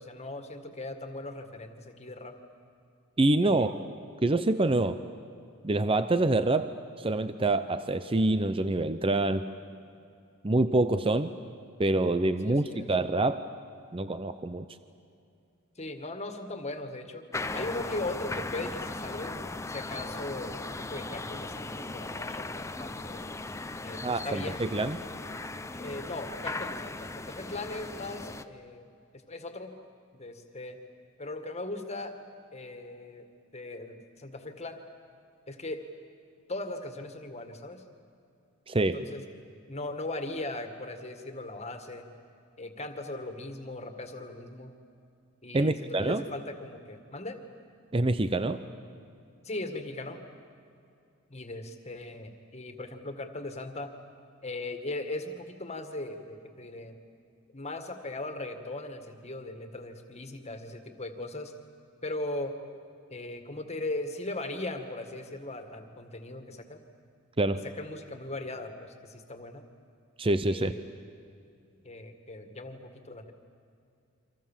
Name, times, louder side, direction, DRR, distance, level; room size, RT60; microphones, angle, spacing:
voice 1, 0.0-2.4 3.4-3.7 12.4-12.9 15.8-17.3 17.5-19.4 19.7-23.2 23.8-24.6 25.8-28.9 29.1-29.7 30.1-30.8 31.2-32.2 32.5-33.2 33.5-34.8 35.5-35.8 36.5-37.8 38.9-39.2 39.7-42.1 42.6-44.7 45.4-47.4 49.4-50.2 51.3-53.9 54.4-57.0 57.5-61.5 62.0-62.6 63.1-66.8 67.6-69.6 70.5-70.8 71.8-73.3, left 2 dB, 30° left, 6 dB, 2.0 m, -38 dB
voice 2, 3.2-3.7 4.2-5.0 5.6-9.5 10.4-11.3 11.8-13.5 13.9-14.7 24.0-25.0 38.7-39.0 45.5-46.2 47.9-48.6 67.4-67.6 70.2-70.7, right 2 dB, 25° right, 11 dB, 0.6 m, -26 dB
sound 1, 17.3-28.4, left 2 dB, 15° left, 0.7 m, -38 dB
29.0 x 25.5 x 7.5 m, 2.5 s
head